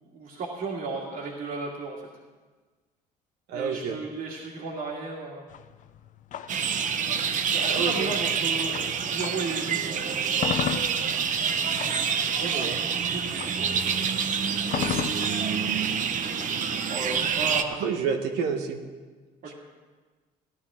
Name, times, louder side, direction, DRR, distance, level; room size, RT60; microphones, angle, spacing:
voice 1, 0.1-2.0 3.5-5.5 7.5-10.3 12.2-14.1 14.6-14.9 16.9-18.0 19.4-19.5, right 3 dB, 65° right, -5 dB, 2.3 m, -35 dB
voice 2, 3.5-4.0 7.7-8.1 12.4-12.8 17.8-18.8 19.5-19.6, right 6 dB, 90° right, 4 dB, 1.3 m, -29 dB
sound 1, 5.5-9.6 10.0-18.0, left 9 dB, 50° left, 0.5 m, -36 dB
sound 2, 6.5-17.6, right 7 dB, 50° right, 0.8 m, -27 dB
17.0 x 11.0 x 3.7 m, 1.4 s
cardioid pair, 110°, 17 cm